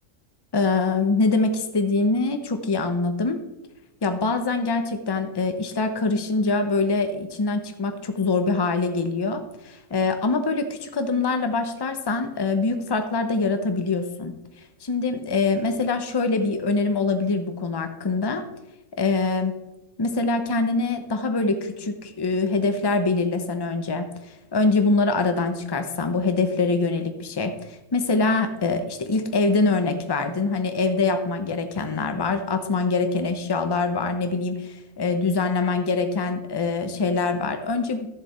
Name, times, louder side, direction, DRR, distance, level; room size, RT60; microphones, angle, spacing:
voice 1, 0.5-3.4 4.0-14.3 14.8-18.4 19.0-19.5 20.0-38.1, left 3 dB, 25° left, 7 dB, 0.6 m, -24 dB
12.0 x 7.0 x 4.3 m, 0.97 s
omnidirectional pair, 1.4 m